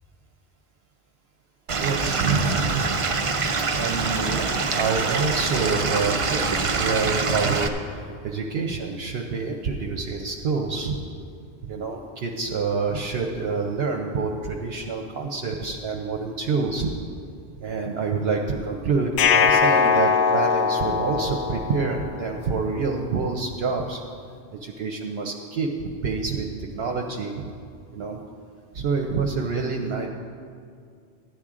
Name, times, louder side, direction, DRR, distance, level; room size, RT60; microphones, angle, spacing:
Stream / Liquid, 1.7-7.7, right 4 dB, 40° right, 0.5 m, -25 dB
voice 1, 1.8-2.9 3.8-11.0 11.6-16.9 17.6-24.0 24.5-25.7 26.0-27.5 27.9-28.2 28.7-30.1, right 4 dB, 65° right, 1 dB, 0.9 m, -27 dB
sound 1, 19.2-22.3, left 6 dB, 80° left, 0.9 m, -21 dB
14.0 x 10.0 x 3.7 m, 2.3 s
omnidirectional pair, 1.1 m